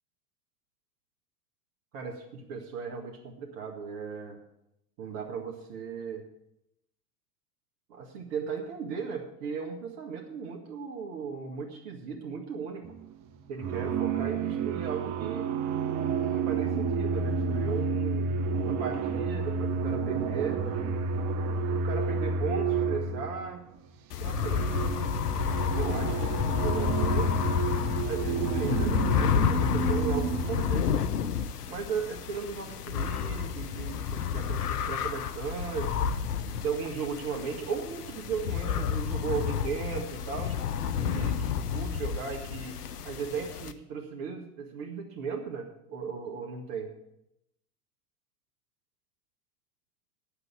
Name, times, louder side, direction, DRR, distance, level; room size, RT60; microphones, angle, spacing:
voice 1, 1.9-4.4 5.0-6.3 7.9-12.8 13.5-15.5 16.3-20.6 21.7-23.6 24.2-24.6 25.7-27.3 28.0-30.9 31.7-36.1 36.6-40.6 41.0-42.8 43.0-46.9, right 6 dB, 50° right, 1 dB, 2.0 m, -36 dB
sound 1, 12.8-13.2 13.6-23.6 24.1-30.7, right 5 dB, 35° right, 1.0 m, -30 dB
sound 2, 24.1-43.7, left 7 dB, 75° left, 0.9 m, -30 dB
9.9 x 6.9 x 9.0 m, 0.83 s
hypercardioid pair, 95°, 47 cm